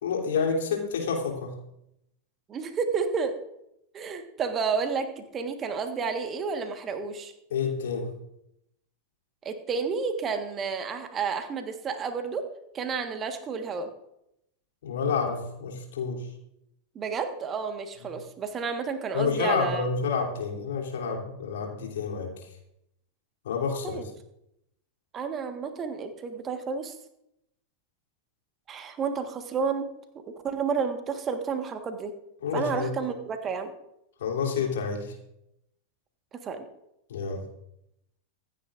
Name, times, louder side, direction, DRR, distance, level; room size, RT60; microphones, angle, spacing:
voice 1, 0.0-1.5 7.5-8.1 14.8-16.2 19.1-22.3 23.4-24.0 32.4-32.9 34.2-35.1 37.1-37.4, left 5 dB, 60° left, 0 dB, 3.2 m, -29 dB
voice 2, 2.5-3.3 3.9-7.3 9.4-12.4 12.7-13.9 16.9-19.9 23.8-24.0 25.1-26.9 28.7-29.9 30.4-32.1 32.5-33.7 36.4-36.6, right 5 dB, 25° right, 7 dB, 1.5 m, -31 dB
25.5 x 9.9 x 2.6 m, 0.81 s
figure-of-eight pair, 90°, 0 cm